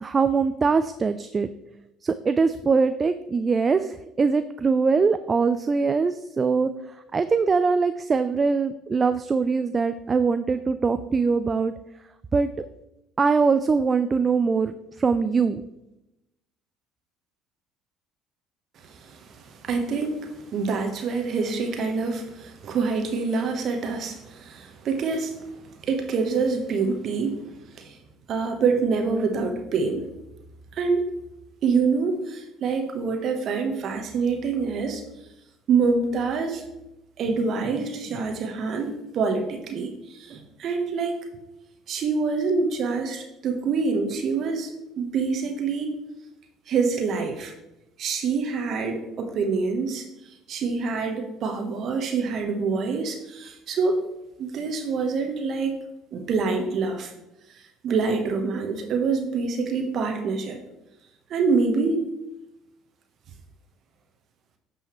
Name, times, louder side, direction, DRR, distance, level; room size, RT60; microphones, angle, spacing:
voice 1, 0.0-1.5 2.0-6.7 7.1-11.7 12.3-12.7 13.2-15.6, right 4 dB, 30° right, 11 dB, 0.4 m, -22 dB
voice 2, 18.8-27.4 27.7-28.0 28.3-30.0 30.7-31.1 31.6-35.0 35.7-36.6 37.2-41.2 41.9-45.9 46.7-47.5 48.0-50.0 50.5-54.0 54.4-55.7 56.1-57.1 57.8-60.6 61.3-62.0, right 4 dB, 55° right, 4 dB, 1.2 m, -26 dB
10.0 x 5.5 x 3.1 m, 0.92 s
hypercardioid pair, 60°, 0 cm